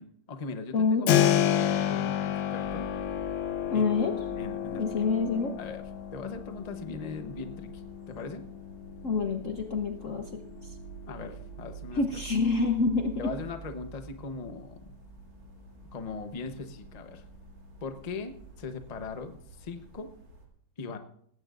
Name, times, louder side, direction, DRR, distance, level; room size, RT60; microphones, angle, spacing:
voice 1, 0.0-2.9 3.7-4.0 4.4-5.1 5.6-5.8 6.1-7.7 8.1-8.4 11.1-12.0 13.2-14.9 15.9-17.2 17.8-20.1 20.8-21.0, left 4 dB, 30° left, 7 dB, 0.7 m, -39 dB
voice 2, 0.7-1.1 3.7-4.1 4.7-5.5 9.0-10.7 11.9-13.3, left 4 dB, 55° left, 5 dB, 1.0 m, -27 dB
Keyboard (musical), 1.1-11.7, left 10 dB, 80° left, 1.5 m, -31 dB
sound 1, 2.6-20.5, right 6 dB, 85° right, 3.1 m, -48 dB
18.5 x 16.0 x 2.5 m, 0.67 s
omnidirectional pair, 2.1 m